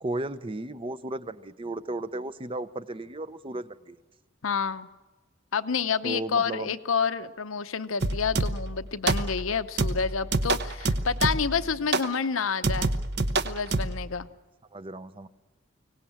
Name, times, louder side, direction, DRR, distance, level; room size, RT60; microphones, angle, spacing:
voice 1, 0.0-4.0 6.0-6.8 14.7-15.3, right 2 dB, 25° right, 13 dB, 0.7 m, -35 dB
voice 2, 4.4-4.9 5.5-12.9 13.4-14.3, left 6 dB, 80° left, 11 dB, 0.8 m, -29 dB
sound 1, 8.0-8.7 9.1-9.5 9.8-11.6 11.9-12.2 12.6-14.0, right 2 dB, 55° right, 0.9 m, -27 dB
24.5 x 17.5 x 8.8 m, 1.2 s
head